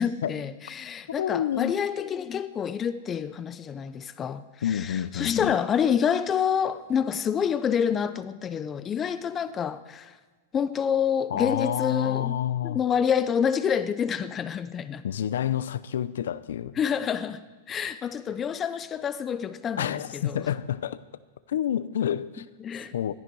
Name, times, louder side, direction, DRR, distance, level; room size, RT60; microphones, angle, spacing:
voice 1, 0.0-4.4 4.7-10.1 10.5-15.0 16.8-17.4 17.7-20.4 22.6-22.9, left 7 dB, 20° left, 0.8 m, -27 dB
voice 2, 1.2-1.7 4.6-5.5 11.3-12.8 15.0-16.7 19.8-21.0 21.5-22.5 22.9-23.1, left 10 dB, 85° left, 0.7 m, -28 dB
21.5 x 14.0 x 4.8 m
supercardioid pair, 150°, 0 cm